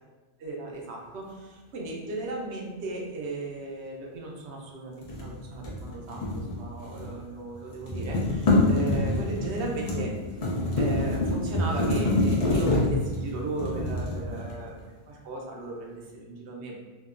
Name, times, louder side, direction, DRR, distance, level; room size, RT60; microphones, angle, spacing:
voice 1, 0.4-10.1 10.7-14.8 15.1-16.8, right 2 dB, 75° right, -1 dB, 0.8 m, -36 dB
sound 1, 5.0-7.3 7.5-14.8, left 2 dB, 45° left, 0.5 m, -27 dB
2.9 x 2.0 x 2.4 m, 1.3 s
omnidirectional pair, 1.1 m